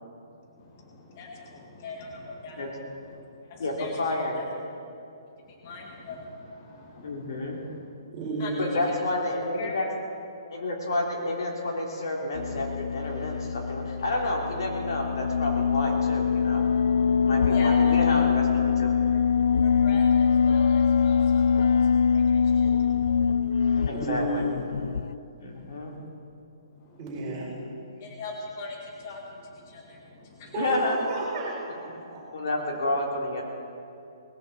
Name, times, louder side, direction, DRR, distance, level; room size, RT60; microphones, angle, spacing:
voice 1, 0.5-2.6 2.9-4.4 5.4-7.8 8.4-8.9 9.5-9.7 17.5-17.9 19.6-23.9 25.4-26.1 26.8-27.0 28.0-30.5, left 3 dB, 30° left, 0 dB, 1.9 m, -42 dB
voice 2, 3.6-4.4 7.0-7.6 8.6-9.8 10.5-16.6 17.2-18.9 19.5-19.8 23.9-24.5 25.4-25.9 27.2-27.4 30.6-31.0 31.7-31.8 32.3-33.4, left 2 dB, 60° left, -1 dB, 3.5 m, -30 dB
voice 3, 8.1-8.8 23.9-24.6 27.0-27.5 30.5-32.2, right 2 dB, 20° right, -7 dB, 4.8 m, -32 dB
sound 1, 12.3-25.1, left 6 dB, 80° left, 0.4 m, -23 dB
20.0 x 14.0 x 4.4 m, 2.6 s
hypercardioid pair, 175°, 3 cm